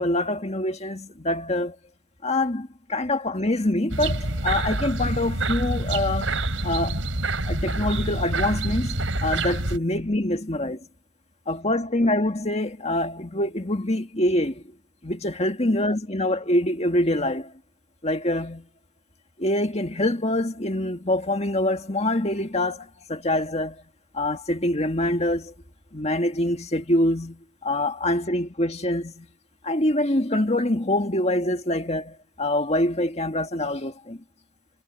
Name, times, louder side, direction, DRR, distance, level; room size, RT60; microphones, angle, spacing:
voice 1, 0.0-1.8 2.2-6.4 6.6-7.1 7.5-10.8 11.5-14.6 15.0-17.5 18.0-18.7 19.4-23.8 24.1-25.5 25.9-29.3 29.6-34.2, left 1 dB, 35° left, 2.0 m, -25 dB
sound 1, 3.9-9.8, right 2 dB, 80° right, 4.4 m, -27 dB
head